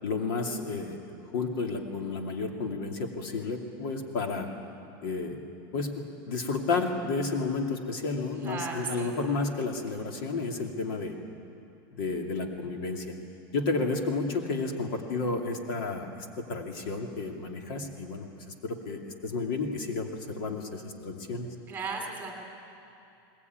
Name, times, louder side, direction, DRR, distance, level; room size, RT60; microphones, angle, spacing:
voice 1, 0.0-1.0 1.3-4.5 5.0-5.4 5.7-11.1 12.0-13.1 13.5-21.5, left 3 dB, 65° left, 3 dB, 2.8 m, -32 dB
voice 2, 8.4-9.1 21.7-22.3, right 4 dB, 15° right, 2 dB, 3.0 m, -35 dB
21.0 x 20.0 x 9.5 m, 2.6 s
supercardioid pair, 160°, 12 cm